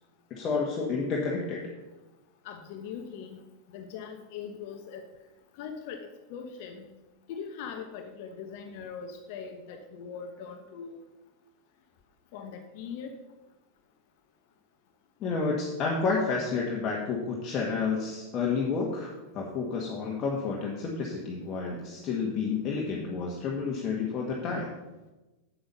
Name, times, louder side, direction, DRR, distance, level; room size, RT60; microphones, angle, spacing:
voice 1, 0.3-1.7 15.2-24.7, left 4 dB, 35° left, -2 dB, 1.7 m, -30 dB
voice 2, 2.4-3.4 3.7-5.0 5.6-6.9 7.3-11.0 12.3-13.1, left 6 dB, 55° left, 4 dB, 1.0 m, -41 dB
8.6 x 7.8 x 5.6 m, 1.1 s
figure-of-eight pair, 90°, 0 cm